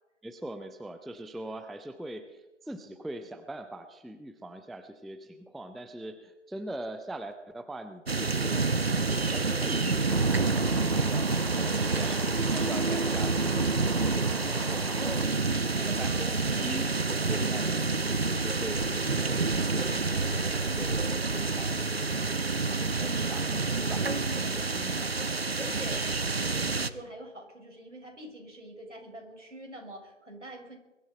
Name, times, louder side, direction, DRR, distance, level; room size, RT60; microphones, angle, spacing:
voice 1, 0.2-8.6 9.3-11.4 11.9-15.1 15.6-21.0 21.3-22.2 22.8-24.1 24.4-25.7, right 1 dB, ahead, 10 dB, 0.4 m, -42 dB
sound 1, 8.1-26.9, right 3 dB, 55° right, 0.9 m, -28 dB
sound 2, 10.1-15.3, left 1 dB, 35° left, 1.0 m, -43 dB
voice 2, 11.5-12.2 14.9-16.4 24.0-30.8, right 1 dB, 75° right, 2 dB, 6.2 m, -45 dB
22.5 x 14.0 x 4.5 m, 1.0 s
figure-of-eight pair, 175°, 37 cm